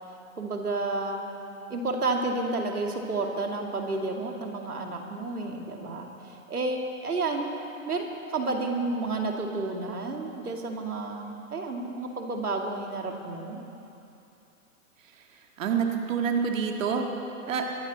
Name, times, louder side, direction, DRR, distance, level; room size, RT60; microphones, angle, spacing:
voice 1, 0.4-1.3 1.7-7.5 7.9-8.1 8.3-13.6, right 3 dB, 85° right, 2 dB, 2.3 m, -31 dB
voice 2, 15.1-17.1 17.5-17.7, right 6 dB, 60° right, 2 dB, 1.9 m, -28 dB
23.5 x 12.5 x 4.0 m, 2.8 s
hypercardioid pair, 120°, 44 cm